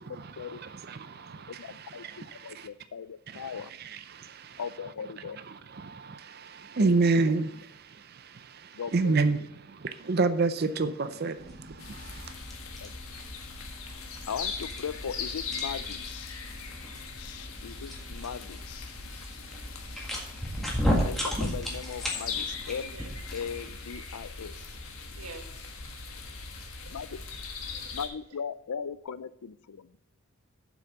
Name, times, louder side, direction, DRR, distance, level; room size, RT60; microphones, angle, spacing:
voice 1, 0.0-2.7 3.3-4.6 5.5-12.3, right 3 dB, 45° right, 0.5 m, -30 dB
voice 2, 1.5-3.7 4.6-5.4 6.8-7.6 8.7-9.5 12.8-13.0 13.8-16.4 17.2-19.0 21.0-23.0 23.3-24.8 26.9-27.2 27.9-30.0, left 6 dB, 90° left, 0.5 m, -39 dB
sound 1, 11.4-23.7, equal, ahead, 1.7 m, -36 dB
sound 2, 11.8-28.1, left 5 dB, 75° left, 1.4 m, -40 dB
voice 3, 25.2-27.0 27.7-28.0, right 3 dB, 85° right, 1.6 m, -49 dB
7.8 x 6.0 x 7.0 m
head